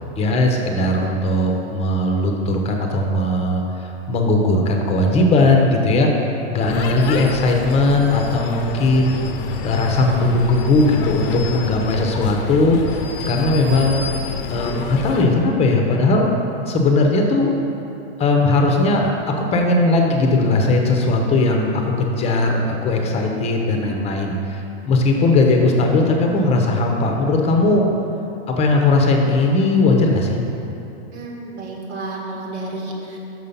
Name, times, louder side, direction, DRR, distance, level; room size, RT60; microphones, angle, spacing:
voice 1, 0.2-6.1 6.5-9.2 9.6-12.9 13.3-14.1 14.5-16.3 16.7-17.5 18.2-19.1 19.4-27.9 28.6-30.4, left 2 dB, 20° left, 2 dB, 0.8 m, -18 dB
sound 1, 6.7-15.3, left 4 dB, 55° left, 0.7 m, -29 dB
voice 2, 31.1-33.2, right 2 dB, 80° right, -1 dB, 1.6 m, -31 dB
6.2 x 5.6 x 5.4 m, 2.9 s
hypercardioid pair, 140°, 33 cm